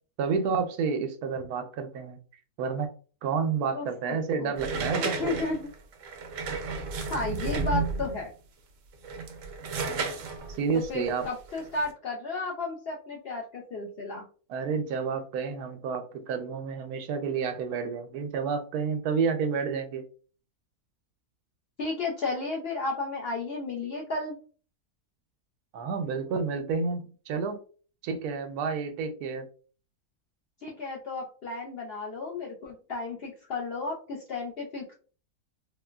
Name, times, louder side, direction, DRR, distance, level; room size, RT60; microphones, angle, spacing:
voice 1, 0.2-2.2 2.6-2.9 3.2-5.4 9.7-10.0 10.5-11.3 14.5-20.0 25.7-27.6 28.0-29.5, right 5 dB, 85° right, 7 dB, 1.1 m, -30 dB
voice 2, 3.7-4.5 5.0-5.7 7.1-8.3 10.9-14.3 21.8-24.4 30.6-34.9, left 3 dB, 65° left, -1 dB, 0.6 m, -33 dB
sound 1, 4.6-8.2 8.9-11.9, right 4 dB, 65° right, 0.8 m, -32 dB
3.7 x 2.1 x 2.3 m, 0.39 s
omnidirectional pair, 1.6 m